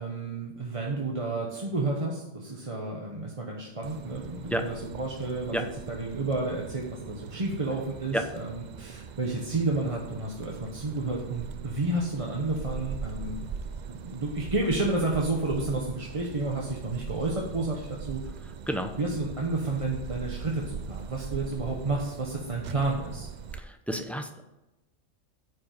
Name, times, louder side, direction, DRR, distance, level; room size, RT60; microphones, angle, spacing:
voice 1, 0.0-13.4 13.9-18.2 19.0-23.3, right 2 dB, 30° right, -2 dB, 1.1 m, -31 dB
sound 1, 3.8-23.6, right 6 dB, 60° right, 0.4 m, -41 dB
voice 2, 23.5-24.4, equal, ahead, 6 dB, 0.4 m, -30 dB
9.6 x 5.2 x 6.7 m, 0.99 s
omnidirectional pair, 1.3 m